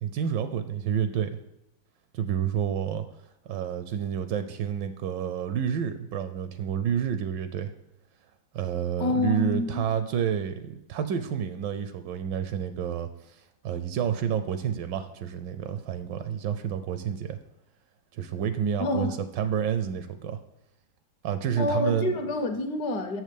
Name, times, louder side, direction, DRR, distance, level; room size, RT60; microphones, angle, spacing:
voice 1, 0.0-1.4 2.1-3.0 3.5-7.7 8.5-13.4 13.6-17.4 18.1-20.4 21.2-22.1, right 8 dB, 75° right, 10 dB, 1.2 m, -29 dB
voice 2, 9.0-9.9 18.8-19.2 21.6-23.2, left 2 dB, 65° left, 6 dB, 1.3 m, -27 dB
7.1 x 6.4 x 5.0 m, 0.88 s
omnidirectional pair, 2.0 m